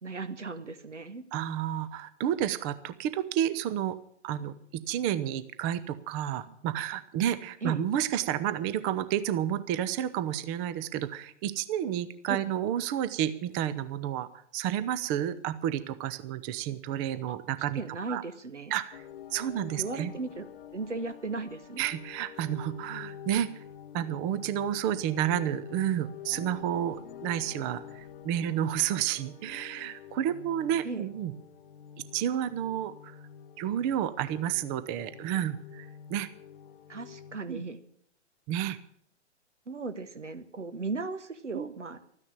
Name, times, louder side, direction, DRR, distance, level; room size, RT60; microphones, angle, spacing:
voice 1, 0.0-1.2 7.6-7.8 12.3-12.4 17.3-17.4 17.7-18.7 19.8-20.5 20.7-21.9 30.8-31.1 36.9-37.8 39.7-42.0, right 3 dB, 85° right, 11 dB, 1.7 m, -36 dB
voice 2, 1.3-4.0 4.2-14.3 14.5-17.8 18.1-18.2 18.7-19.0 19.3-20.1 21.8-23.6 23.9-31.3 32.1-33.2 33.6-36.3 37.5-37.6 38.5-38.8 41.5-41.7, right 10 dB, 20° right, 14 dB, 0.5 m, -31 dB
sound 1, 18.9-37.4, left 9 dB, 50° left, 1.1 m, -47 dB
13.5 x 9.8 x 8.6 m, 0.67 s
figure-of-eight pair, 130°, 35 cm